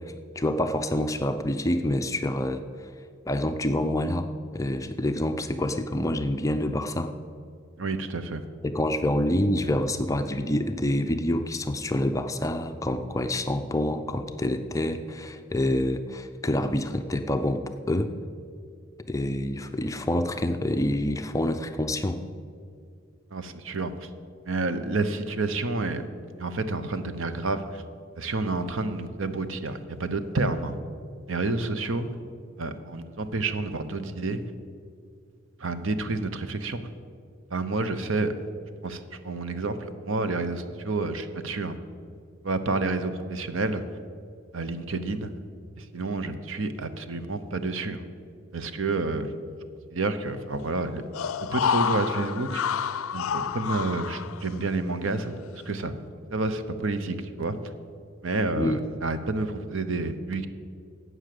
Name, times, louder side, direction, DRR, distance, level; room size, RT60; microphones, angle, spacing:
voice 1, 0.4-2.9 3.3-7.1 8.6-18.1 19.1-22.2 58.6-58.8, left 1 dB, 15° left, 7 dB, 0.5 m, -27 dB
voice 2, 7.8-8.4 23.3-24.1 24.5-26.0 26.4-27.8 28.2-30.8 31.3-32.1 32.6-34.4 35.6-36.8 37.5-38.3 38.8-41.8 42.4-43.8 44.5-45.3 45.8-48.0 48.5-49.3 49.9-51.0 51.4-52.6 53.1-55.9 56.3-57.6 58.2-60.5, right 3 dB, 70° right, 10 dB, 0.8 m, -29 dB
sound 1, 51.1-54.8 55.2-55.3, left 7 dB, 85° left, 0.4 m, -29 dB
11.5 x 8.0 x 7.7 m, 2.3 s
head